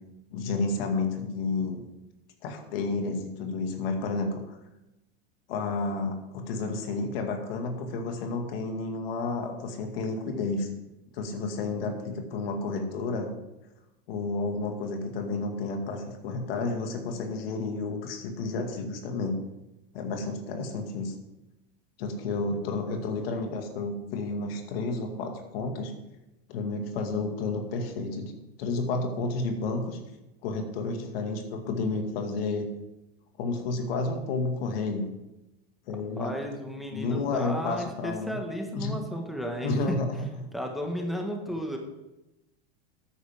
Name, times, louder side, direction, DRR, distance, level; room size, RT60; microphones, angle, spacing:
voice 1, 0.3-1.8 2.4-4.6 5.5-10.7 11.1-13.3 14.1-19.4 19.9-21.1 22.0-25.9 26.5-30.0 30.4-32.7 33.4-35.1 35.9-36.4 36.9-38.4 38.7-39.0 39.6-40.5, left 3 dB, 70° left, 4 dB, 2.2 m, -31 dB
voice 2, 36.2-40.0 40.5-41.8, equal, ahead, 2 dB, 1.6 m, -33 dB
13.0 x 9.5 x 3.7 m, 0.97 s
hypercardioid pair, 110°, 30 cm